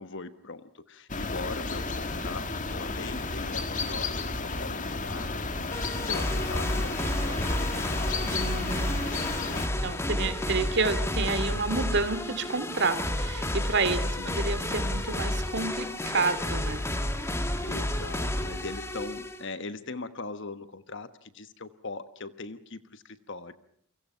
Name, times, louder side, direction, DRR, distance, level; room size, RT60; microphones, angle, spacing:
voice 1, 0.0-5.3 6.0-7.7 9.4-9.9 14.2-14.6 17.6-23.5, left 3 dB, 55° left, 12 dB, 1.2 m, -40 dB
sound 1, 1.1-9.7, left 3 dB, 35° left, 2.0 m, -32 dB
sound 2, 5.7-19.4, left 1 dB, 10° left, 2.0 m, -31 dB
voice 2, 8.3-16.8, right 3 dB, 50° right, 12 dB, 2.6 m, -30 dB
29.0 x 25.0 x 5.7 m, 0.68 s
head